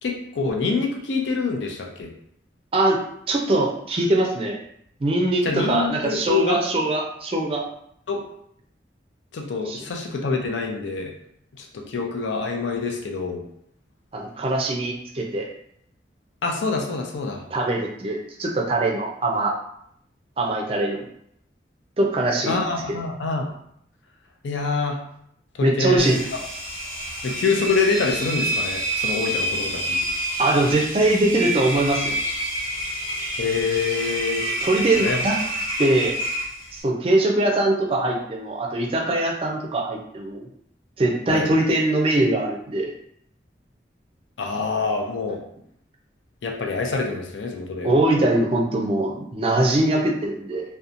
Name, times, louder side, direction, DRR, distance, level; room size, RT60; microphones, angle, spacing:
voice 1, 0.0-2.1 5.4-6.6 8.1-8.2 9.3-11.1 11.6-13.4 16.4-17.4 22.5-23.5 24.4-25.0 25.6-26.2 27.2-30.0 33.4-34.5 35.0-35.2 41.3-41.5 44.4-45.4 46.4-47.9, left 4 dB, 85° left, 1 dB, 0.4 m, -25 dB
voice 2, 2.7-4.6 5.0-7.6 9.7-9.9 14.1-15.5 17.5-19.5 20.4-21.0 22.0-22.6 25.6-26.2 30.4-32.2 34.6-35.3 35.8-36.2 36.7-40.5 41.0-42.9 47.8-50.6, right 2 dB, 30° right, 0 dB, 0.4 m, -22 dB
Engine, 26.0-36.8, right 1 dB, 25° left, 0.8 m, -28 dB
2.7 x 2.1 x 2.5 m, 0.71 s
head